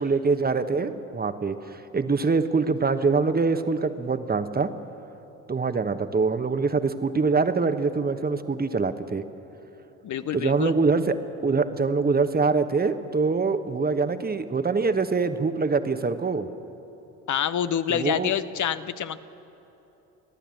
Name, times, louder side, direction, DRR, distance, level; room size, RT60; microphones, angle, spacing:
voice 1, 0.0-4.7 5.5-9.2 10.3-11.2 11.4-16.5 17.9-18.3, right 4 dB, 20° right, 10 dB, 1.2 m, -24 dB
voice 2, 10.0-10.7 17.3-19.2, left 9 dB, 40° left, 13 dB, 0.9 m, -27 dB
30.0 x 12.0 x 7.7 m, 3.0 s
figure-of-eight pair, 50°, 46 cm